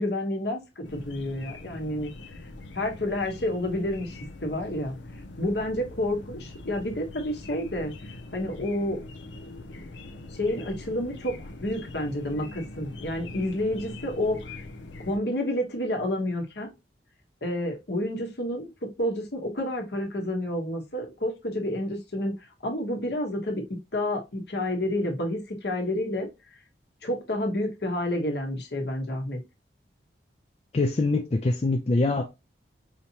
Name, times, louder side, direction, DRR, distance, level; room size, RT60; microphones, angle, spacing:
voice 1, 0.0-2.1 2.7-4.9 5.4-7.9 8.3-9.0 10.3-11.3 11.6-14.5 15.1-16.7 17.4-18.7 19.0-22.3 22.6-23.6 23.9-26.3 27.0-29.4, left 1 dB, 65° left, 1.2 m, -29 dB
sound 1, 0.8-15.2, left 2 dB, 80° left, 0.6 m, -42 dB
voice 2, 30.7-32.2, left 2 dB, 35° left, 0.4 m, -24 dB
4.9 x 2.9 x 2.8 m
head